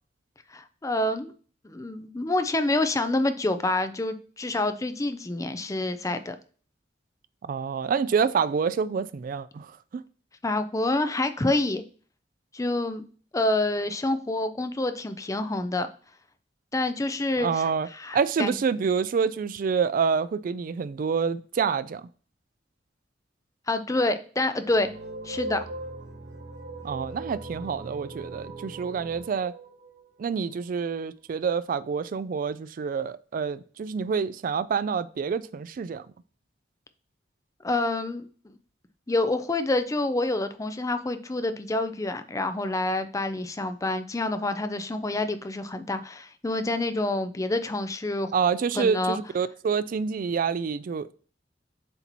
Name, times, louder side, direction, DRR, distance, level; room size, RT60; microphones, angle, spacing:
voice 1, 0.5-1.3 1.6-6.4 10.4-11.8 12.5-13.0 13.3-15.9 16.7-18.6 23.7-24.9 25.2-25.7 37.6-38.6 39.1-48.3 48.8-49.2, left 2 dB, 20° left, 0.5 m, -27 dB
voice 2, 7.4-10.0 17.4-17.9 18.1-22.1 26.8-29.5 30.2-36.1 48.3-51.1, right 6 dB, 50° right, 0.3 m, -27 dB
sound 1, 24.7-30.8, right 2 dB, 80° right, 1.9 m, -40 dB
7.8 x 2.8 x 4.5 m
head